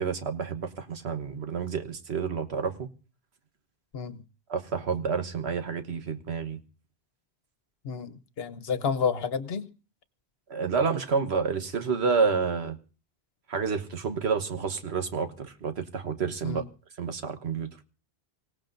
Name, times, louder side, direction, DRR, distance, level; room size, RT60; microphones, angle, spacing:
voice 1, 0.0-2.9 4.5-6.6 10.5-12.8 13.5-16.6 17.0-17.7, right 5 dB, 90° right, 1.5 m, -29 dB
voice 2, 7.8-9.7 16.4-16.6, left 6 dB, 70° left, 1.1 m, -30 dB
25.0 x 17.0 x 2.6 m
omnidirectional pair, 1.1 m